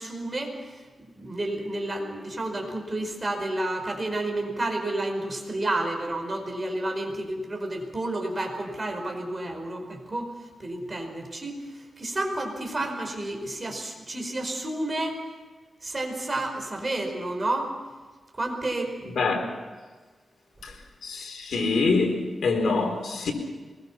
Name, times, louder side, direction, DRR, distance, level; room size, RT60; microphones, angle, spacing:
voice 1, 0.0-10.3 10.6-15.2 15.8-17.7 18.3-19.2, right 1 dB, 30° right, 5.1 m, -31 dB
voice 2, 19.2-19.5 20.6-20.7 21.0-23.3, left 3 dB, 85° left, 4.0 m, -25 dB
23.5 x 21.5 x 5.8 m
wide cardioid pair, 110°, 0 cm